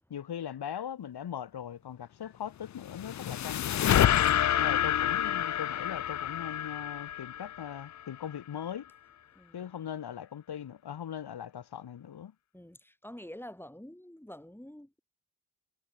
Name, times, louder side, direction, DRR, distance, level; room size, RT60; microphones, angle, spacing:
voice 1, 0.1-4.0 4.6-8.9 9.5-12.3, left 9 dB, 80° left, 1.8 m, -40 dB
sound 1, 2.6-8.0, left 11 dB, 50° left, 0.4 m, -28 dB
voice 2, 9.3-9.8 12.5-15.0, left 1 dB, 5° left, 6.9 m, -48 dB
wide cardioid pair, 110°, 39 cm